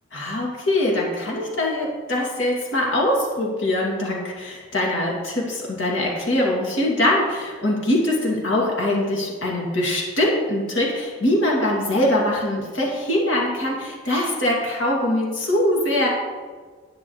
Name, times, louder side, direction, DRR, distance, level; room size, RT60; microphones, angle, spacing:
voice 1, 0.1-16.1, left 1 dB, 90° left, -2 dB, 2.7 m, -22 dB
10.5 x 10.5 x 3.3 m, 1.5 s
head